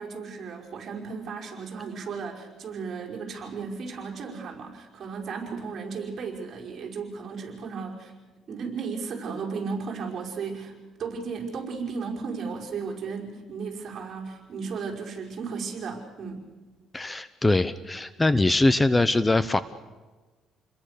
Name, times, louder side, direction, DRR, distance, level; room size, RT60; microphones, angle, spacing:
voice 1, 0.0-8.1 8.5-10.7 11.0-16.5, right 5 dB, 45° right, -1 dB, 5.5 m, -35 dB
voice 2, 16.9-19.6, left 2 dB, 15° left, 14 dB, 0.7 m, -22 dB
29.0 x 21.5 x 6.8 m, 1.3 s
cardioid pair, 115°, 0 cm